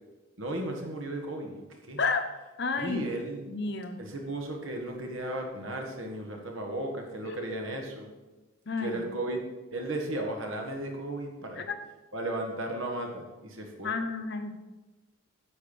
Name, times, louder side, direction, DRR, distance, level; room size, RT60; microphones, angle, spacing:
voice 1, 0.4-2.0 2.8-3.4 4.0-8.1 8.8-9.4 9.7-11.6 12.1-13.9, right 1 dB, 70° right, 2 dB, 1.7 m, -35 dB
voice 2, 2.6-3.0 3.5-4.0 7.2-7.4 8.7-9.0 11.6-11.8 13.8-14.5, left 4 dB, 55° left, 6 dB, 1.0 m, -31 dB
9.5 x 6.5 x 5.4 m, 1.1 s
head